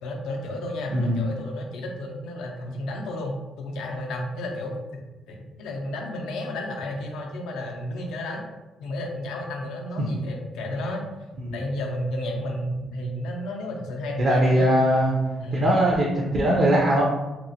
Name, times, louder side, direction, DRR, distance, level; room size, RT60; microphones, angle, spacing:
voice 1, 0.0-4.8 5.3-8.5 8.8-11.0 11.5-14.8 15.4-15.7, left 1 dB, 90° left, 1 dB, 0.5 m, -32 dB
voice 2, 0.9-1.2 10.0-10.1 11.4-11.5 14.2-15.2 15.5-17.0, equal, 45° right, -3 dB, 0.5 m, -20 dB
2.9 x 2.1 x 2.7 m, 1.1 s
cardioid pair, 90°, 0 cm